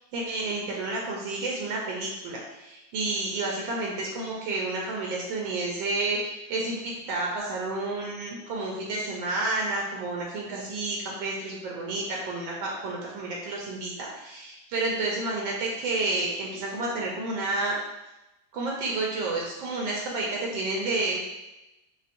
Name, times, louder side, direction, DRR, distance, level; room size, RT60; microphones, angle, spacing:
voice 1, 0.1-17.7 18.5-21.2, right 2 dB, 85° right, -2 dB, 1.4 m, -30 dB
5.4 x 2.1 x 2.5 m, 0.96 s
omnidirectional pair, 2.1 m